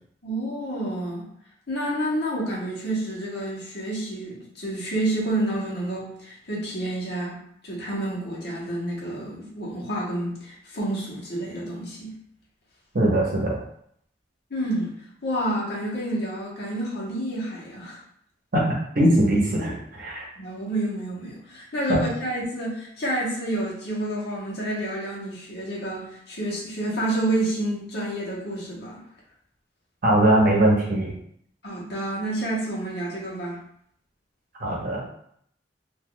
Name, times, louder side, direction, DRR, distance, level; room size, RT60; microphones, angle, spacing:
voice 1, 0.2-1.3 1.7-7.4 7.6-12.1 14.5-14.9 15.2-18.0 20.4-29.0 31.6-33.6, right 1 dB, 60° left, -5 dB, 1.1 m, -29 dB
voice 2, 12.9-13.6 18.5-20.2 21.9-22.0 30.0-31.1 34.6-35.0, right 1 dB, 50° right, -4 dB, 0.9 m, -21 dB
2.7 x 2.4 x 3.7 m, 0.67 s
head